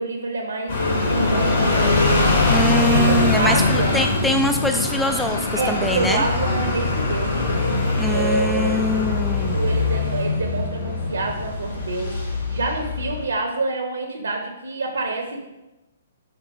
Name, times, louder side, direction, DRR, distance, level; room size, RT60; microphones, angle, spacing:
voice 1, 0.0-2.4 2.9-4.1 5.5-7.4 8.1-15.4, right 3 dB, 70° right, 2 dB, 0.9 m, -27 dB
sound 1, 0.7-13.3, left 3 dB, 60° left, 1.9 m, -22 dB
voice 2, 2.5-6.2 8.0-9.6, left 1 dB, 5° left, 4 dB, 0.3 m, -23 dB
6.1 x 3.7 x 4.7 m, 0.98 s
figure-of-eight pair, 120°, 0 cm